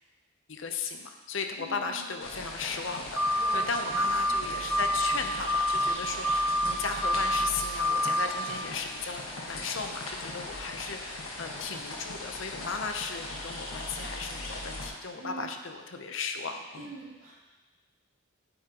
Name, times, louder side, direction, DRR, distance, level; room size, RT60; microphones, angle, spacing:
voice 1, 0.5-16.9, left 5 dB, 70° left, 5 dB, 0.7 m, -36 dB
voice 2, 1.6-2.0 3.4-4.2 15.2-15.5 16.8-17.3, right 2 dB, 85° right, -7 dB, 2.9 m, -44 dB
sound 1, 2.2-14.9, left 2 dB, 85° left, 1.4 m, -39 dB
sound 2, 3.2-3.6 3.9-4.4 4.7-5.2 5.5-5.9 6.2-6.7 7.0-7.5 7.8-8.3, equal, 10° right, 0.7 m, -26 dB
8.9 x 8.1 x 2.9 m, 1.2 s
head